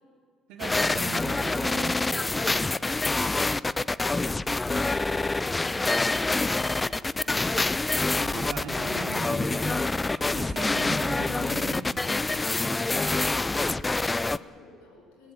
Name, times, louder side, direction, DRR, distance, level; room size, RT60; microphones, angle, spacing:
voice 1, 0.5-2.0 8.2-9.9 10.3-11.9, right 4 dB, 80° right, 1 dB, 3.2 m, -38 dB
sound 1, 0.6-14.4, left 3 dB, 20° left, 0.5 m, -26 dB
sound 2, 1.6-3.6 4.1-10.2, left 2 dB, 65° left, 5.1 m, -57 dB
sound 3, 4.4-10.5, left 3 dB, 45° left, 1.7 m, -48 dB
voice 2, 12.7-15.3, left 2 dB, 90° left, 0 dB, 7.1 m, -54 dB
22.0 x 19.0 x 7.9 m, 2.3 s
supercardioid pair, 70°, 0 cm